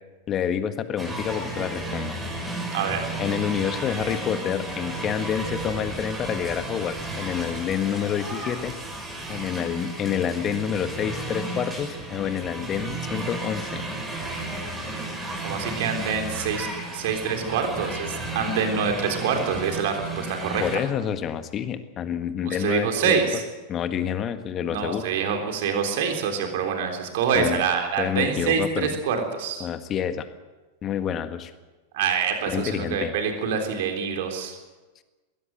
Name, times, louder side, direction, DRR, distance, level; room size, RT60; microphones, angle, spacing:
voice 1, 0.3-2.1 3.2-8.7 9.3-13.8 20.6-23.2 23.7-25.0 27.3-27.6 28.0-28.9 29.6-30.3 30.8-31.5 32.5-33.1, left 9 dB, 30° left, 10 dB, 1.7 m, -28 dB
sound 1, 1.0-20.8, right 2 dB, 15° right, 6.3 m, -33 dB
voice 2, 2.7-3.0 15.4-16.7 16.9-20.6 22.4-23.4 24.7-29.6 31.9-34.6, right 6 dB, 50° right, 4 dB, 3.7 m, -26 dB
21.5 x 17.0 x 8.0 m, 1.2 s
figure-of-eight pair, 90°, 0 cm